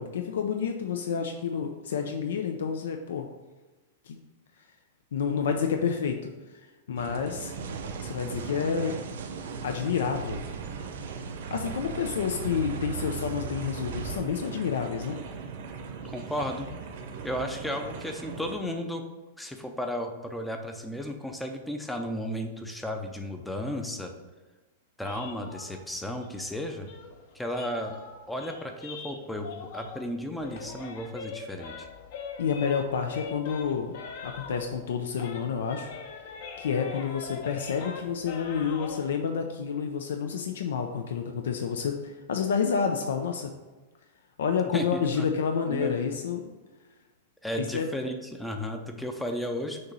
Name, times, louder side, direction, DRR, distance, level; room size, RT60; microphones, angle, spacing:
voice 1, 0.0-3.3 4.1-4.2 5.1-6.3 6.9-7.5 8.0-9.0 9.6-10.4 11.5-15.2 32.4-35.9 36.6-43.5 44.4-46.4 47.5-47.9, left 6 dB, 90° left, 4 dB, 0.5 m, -29 dB
sound 1, 7.0-18.5, right 5 dB, 55° right, 0.8 m, -40 dB
sound 2, 7.2-14.2, right 6 dB, 90° right, 0.7 m, -39 dB
voice 2, 16.0-16.7 17.2-19.0 19.4-24.1 25.0-26.9 27.3-28.0 28.3-31.9 44.7-46.1 47.4-49.9, left 1 dB, 5° left, 4 dB, 0.5 m, -34 dB
sound 3, 25.0-30.1 30.4-34.9 35.2-39.0, left 5 dB, 55° left, 0.8 m, -42 dB
6.4 x 3.0 x 5.3 m, 1.2 s
supercardioid pair, 165°, 0 cm